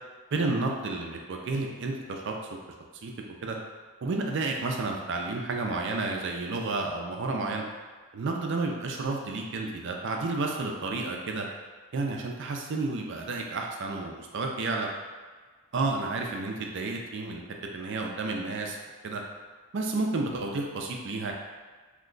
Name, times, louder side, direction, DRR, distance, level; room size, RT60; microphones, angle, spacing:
voice 1, 0.3-2.3 3.0-3.1 3.4-3.6 4.0-7.6 8.1-11.5 11.9-14.9 15.7-17.4 17.7-18.8 19.0-19.2 19.7-21.3, right 3 dB, 55° right, 1 dB, 0.4 m, -31 dB
2.9 x 2.2 x 3.8 m, 1.4 s
head